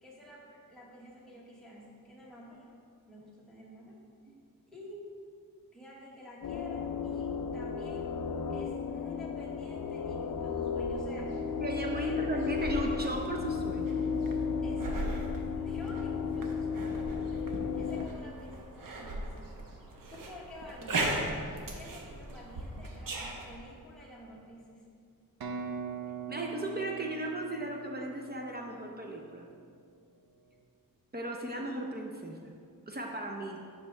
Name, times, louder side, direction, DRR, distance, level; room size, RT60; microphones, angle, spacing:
voice 1, 0.0-2.7 3.1-4.0 4.7-5.1 5.7-8.1 8.5-11.4 12.0-12.4 14.6-15.3 15.5-19.3 20.1-24.8, left 1 dB, ahead, -5 dB, 1.2 m, -50 dB
sound 1, 6.4-18.1, left 5 dB, 60° left, 0.5 m, -34 dB
sound 2, 10.7-23.6, right 2 dB, 65° right, 1.0 m, -39 dB
voice 2, 11.6-14.0 26.3-29.5 31.1-32.6 32.9-33.6, right 1 dB, 25° right, 1 dB, 0.6 m, -36 dB
sound 3, 25.4-29.2, right 6 dB, 85° right, 0.8 m, -42 dB
9.7 x 5.8 x 3.3 m, 2.2 s
wide cardioid pair, 120°, 35 cm